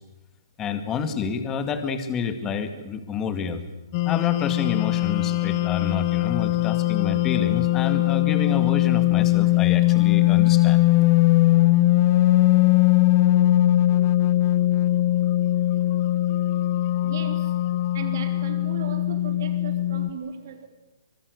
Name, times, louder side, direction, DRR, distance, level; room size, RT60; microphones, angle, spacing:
voice 1, 0.6-3.6 4.0-10.8, left 6 dB, 15° left, 9 dB, 2.1 m, -29 dB
sound 1, 3.9-20.1, left 16 dB, 30° left, 1.0 m, -20 dB
voice 2, 17.0-17.6 17.9-20.7, right 7 dB, 50° right, 6 dB, 4.3 m, -37 dB
25.0 x 22.0 x 8.1 m, 0.98 s
hypercardioid pair, 160°, 2 cm